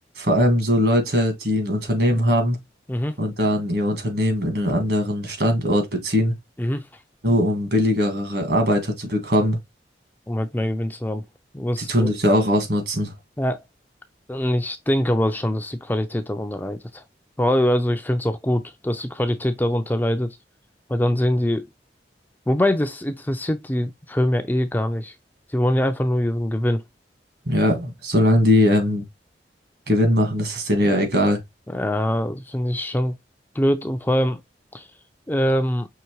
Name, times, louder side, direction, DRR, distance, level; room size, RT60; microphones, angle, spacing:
voice 1, 0.2-2.6 3.2-6.3 7.2-9.6 11.8-13.1 27.5-29.0 29.9-31.4, equal, 65° right, 1.6 m, -20 dB
voice 2, 10.3-11.2 11.5-12.1 13.4-13.6 14.3-17.0 17.4-20.4 20.9-21.7 22.5-25.1 25.5-26.8 31.7-33.1 33.6-34.4 34.7-34.9 35.3-35.9, left 1 dB, 10° left, 0.4 m, -23 dB
5.7 x 3.1 x 3.0 m
head